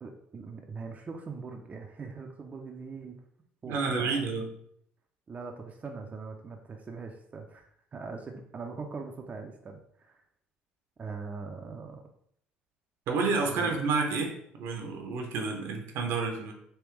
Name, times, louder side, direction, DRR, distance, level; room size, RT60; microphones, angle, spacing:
voice 1, 0.0-3.2 3.6-4.2 5.3-10.2 11.0-12.0 13.5-13.8, right 4 dB, 35° right, 2 dB, 0.5 m, -41 dB
voice 2, 3.7-4.5 13.1-16.5, right 4 dB, 70° right, 3 dB, 0.7 m, -30 dB
3.4 x 3.0 x 3.0 m, 0.68 s
hypercardioid pair, 65°, 4 cm